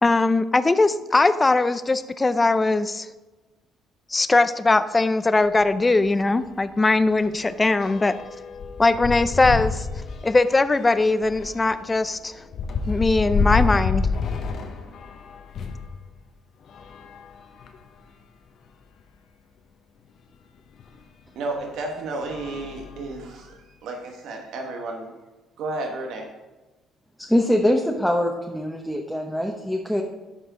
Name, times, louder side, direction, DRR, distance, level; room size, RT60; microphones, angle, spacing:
voice 1, 0.0-3.1 4.1-8.1 8.8-9.9 10.2-12.4 12.9-14.1, left 3 dB, 20° left, 13 dB, 0.5 m, -20 dB
sound 1, 5.4-5.6 6.0-6.2 6.4-15.9 16.6-18.0 18.7-18.8 19.0-19.1 20.8-20.9 21.5-21.8 22.2-23.5, left 5 dB, 60° left, 0.9 m, -29 dB
voice 2, 21.3-25.1 25.6-26.3, right 2 dB, 75° right, 2 dB, 1.0 m, -32 dB
voice 3, 27.2-30.0, left 1 dB, ahead, 1 dB, 0.8 m, -23 dB
11.5 x 4.6 x 3.8 m, 1.2 s
cardioid pair, 80°, 0 cm